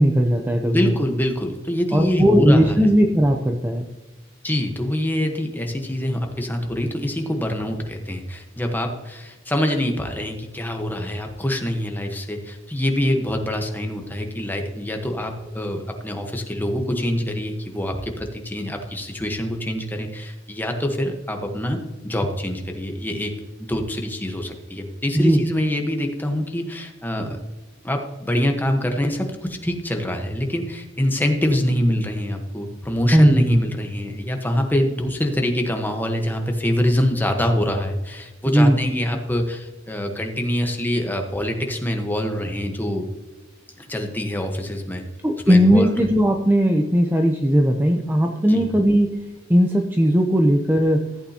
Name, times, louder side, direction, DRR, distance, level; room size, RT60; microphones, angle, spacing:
voice 1, 0.0-0.9 1.9-3.9 25.1-25.4 33.1-33.6 38.5-39.0 45.2-49.1 49.5-51.0, equal, 10° right, 3 dB, 0.6 m, -17 dB
voice 2, 0.6-2.8 4.4-23.3 23.6-27.4 27.8-43.1 43.8-45.0 45.5-45.9 48.4-48.7, left 1 dB, 10° left, 4 dB, 1.1 m, -25 dB
14.5 x 8.6 x 2.9 m, 1.1 s
head